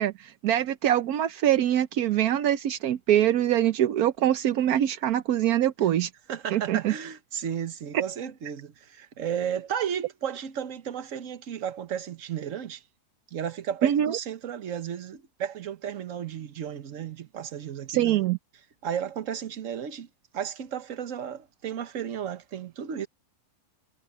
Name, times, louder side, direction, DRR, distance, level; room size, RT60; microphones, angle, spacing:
voice 1, 0.0-6.1 6.5-6.9 13.8-14.2 17.9-18.4, right 11 dB, 80° right, 1.2 m, -24 dB
voice 2, 6.3-12.8 13.3-18.2 18.8-20.1 20.3-23.1, right 8 dB, 60° right, 1.5 m, -33 dB
omnidirectional pair, 1.6 m